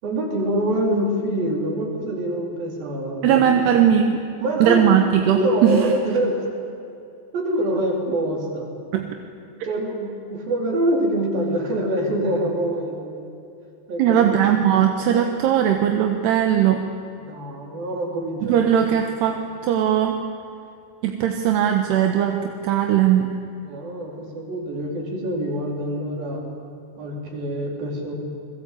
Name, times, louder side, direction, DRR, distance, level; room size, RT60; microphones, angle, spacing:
voice 1, 0.0-3.5 4.4-4.8 5.3-6.4 7.3-8.7 9.6-13.1 13.9-14.5 17.2-18.7 23.6-26.4 27.0-28.1, right 1 dB, 50° right, 0 dB, 5.9 m, -25 dB
voice 2, 3.2-4.2 4.6-5.9 8.9-9.1 14.0-16.8 18.4-20.2 21.0-23.3, right 9 dB, 70° right, 4 dB, 3.1 m, -19 dB
29.5 x 21.0 x 8.7 m, 2.7 s
omnidirectional pair, 5.5 m